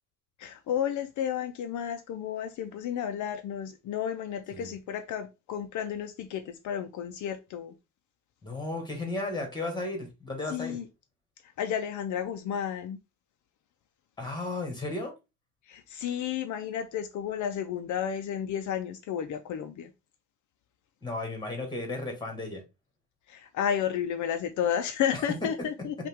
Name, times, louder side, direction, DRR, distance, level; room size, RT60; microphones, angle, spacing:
voice 1, 0.4-7.7 10.5-10.8 11.6-13.0 15.7-19.9 23.3-25.9, left 9 dB, 65° left, 0.6 m, -32 dB
voice 2, 8.4-10.8 14.2-15.1 21.0-22.6 25.1-25.2, left 2 dB, 15° left, 1.6 m, -34 dB
5.5 x 2.5 x 3.5 m
cardioid pair, 155°, 32 cm